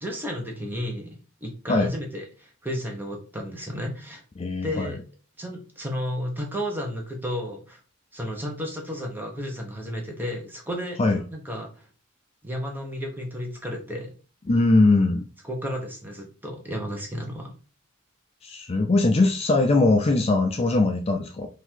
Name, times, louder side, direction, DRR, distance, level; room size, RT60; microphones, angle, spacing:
voice 1, 0.0-4.2 4.6-5.0 5.4-7.8 8.1-11.0 11.3-11.9 12.4-14.1 15.4-17.5, equal, 10° right, 1 dB, 0.9 m, -33 dB
voice 2, 4.4-4.9 11.0-11.2 14.5-15.2 18.4-21.5, left 2 dB, 30° left, 4 dB, 0.4 m, -21 dB
3.8 x 2.6 x 4.5 m, 0.36 s
head